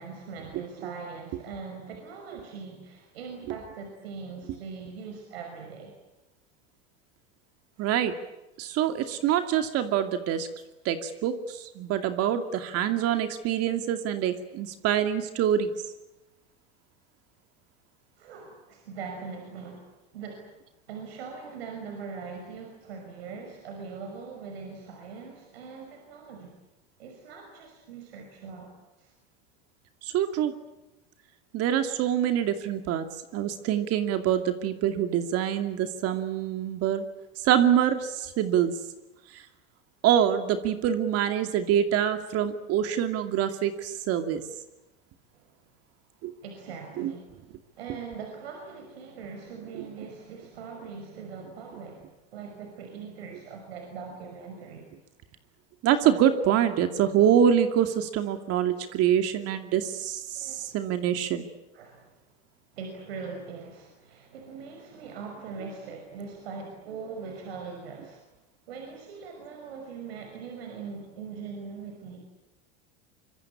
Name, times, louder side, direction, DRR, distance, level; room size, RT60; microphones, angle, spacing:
voice 1, 0.0-5.9 7.8-7.9 8.6-8.7 18.2-19.9 20.1-20.5 20.9-26.5 27.0-28.7 29.0-29.1 45.3-45.5 46.4-47.4 47.8-54.9 60.3-60.7 61.7-62.1 62.7-68.2 68.7-72.2, right 5 dB, 90° right, 3 dB, 5.8 m, -41 dB
voice 2, 7.8-8.1 8.6-10.5 10.8-15.7 30.0-30.5 31.5-33.1 33.3-37.1 37.4-38.7 39.3-39.4 40.0-44.4 46.2-46.3 47.0-47.1 55.8-61.4, right 10 dB, 50° right, 8 dB, 2.5 m, -25 dB
25.0 x 23.0 x 8.7 m, 0.98 s
supercardioid pair, 110°, 30 cm